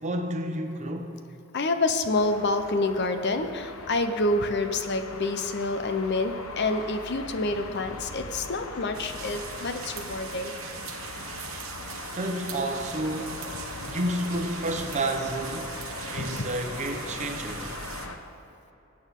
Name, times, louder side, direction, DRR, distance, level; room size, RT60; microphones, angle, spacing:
voice 1, 0.0-1.1 12.1-15.7 16.1-17.7, right 1 dB, 35° right, 4 dB, 1.0 m, -31 dB
voice 2, 1.5-10.5 16.2-16.5, left 2 dB, 55° left, 8 dB, 0.7 m, -27 dB
sound 1, 2.1-18.2, left 3 dB, 80° left, 1.0 m, -40 dB
sound 2, 8.9-18.1, right 6 dB, 75° right, 1.1 m, -41 dB
19.5 x 8.7 x 3.7 m, 3.0 s
head